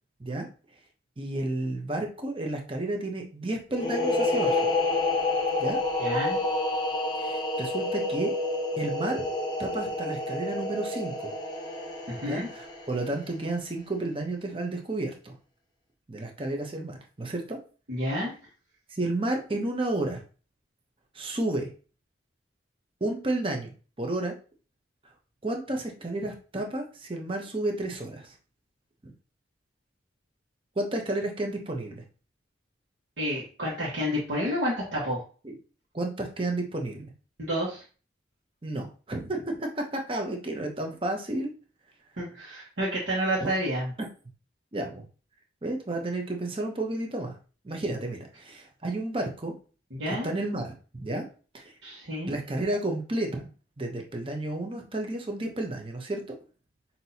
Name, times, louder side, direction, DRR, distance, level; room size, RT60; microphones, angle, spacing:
voice 1, 1.2-4.6 5.6-5.8 7.2-8.3 8.8-9.2 9.6-11.3 12.3-15.3 16.1-17.6 18.9-20.2 21.1-21.7 23.0-23.7 24.0-24.3 25.4-28.3 29.0-29.1 30.8-32.0 35.4-35.5 35.9-37.1 38.6-41.5 43.4-43.5 44.7-45.0 45.6-47.4 47.6-49.5 50.1-51.3 51.5-51.7 52.3-53.5 53.8-56.2, right 2 dB, 30° right, 3 dB, 0.7 m, -31 dB
sound 1, 3.7-13.2, left 2 dB, 20° left, 0.7 m, -29 dB
voice 2, 6.0-6.4 12.1-12.5 17.9-18.3 33.2-35.2 37.4-37.8 42.2-43.9 49.9-50.3 51.8-52.3, equal, 75° right, -6 dB, 1.3 m, -29 dB
5.9 x 2.7 x 2.8 m, 0.37 s
head